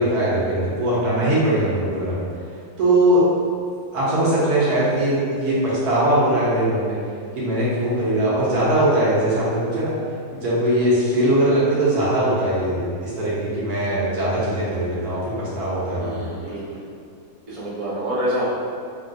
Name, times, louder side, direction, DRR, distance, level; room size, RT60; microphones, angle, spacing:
voice 1, 0.0-2.2 2.8-3.2 3.9-7.0 7.3-9.9 10.3-16.3, right 1 dB, 75° right, -8 dB, 1.4 m, -20 dB
voice 2, 15.9-16.8 17.5-18.4, equal, 40° right, -9 dB, 0.5 m, -27 dB
3.6 x 2.3 x 2.5 m, 2.4 s
omnidirectional pair, 1.7 m